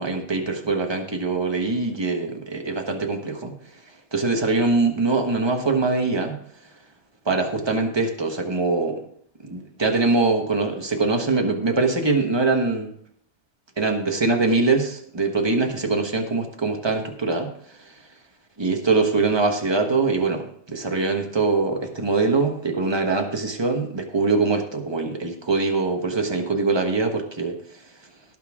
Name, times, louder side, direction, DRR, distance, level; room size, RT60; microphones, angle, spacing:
voice 1, 0.0-3.6 4.1-6.4 7.2-9.0 9.4-12.9 13.8-17.5 18.6-27.6, right 3 dB, 20° right, 3 dB, 1.3 m, -23 dB
18.0 x 6.2 x 3.7 m, 0.65 s
omnidirectional pair, 1.5 m